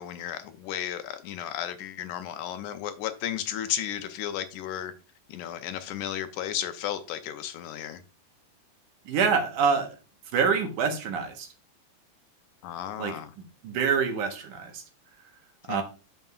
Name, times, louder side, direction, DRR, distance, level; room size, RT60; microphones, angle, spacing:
voice 1, 0.0-4.9 5.3-8.0 12.6-13.3 15.7-15.8, left 10 dB, 80° left, 2.1 m, -34 dB
voice 2, 9.1-9.9 10.3-11.5 13.0-13.1 13.6-14.8 15.7-15.8, right 6 dB, 75° right, 2.6 m, -26 dB
9.1 x 6.7 x 2.4 m
omnidirectional pair, 3.7 m